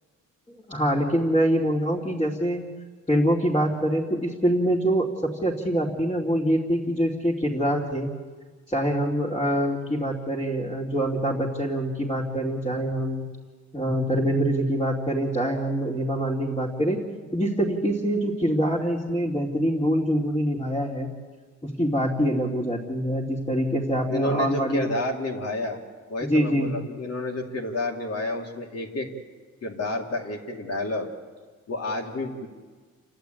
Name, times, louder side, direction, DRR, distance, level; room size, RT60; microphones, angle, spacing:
voice 1, 0.7-2.6 3.1-5.1 5.4-8.1 8.7-13.2 13.7-17.0 17.3-21.1 21.6-24.9 26.2-26.7, equal, 15° left, -3 dB, 2.6 m, -25 dB
voice 2, 24.1-25.8 26.1-29.1 29.6-31.1 31.7-32.5, left 2 dB, 50° left, 0 dB, 2.4 m, -30 dB
29.0 x 11.5 x 9.1 m, 1.5 s
cardioid pair, 120°, 31 cm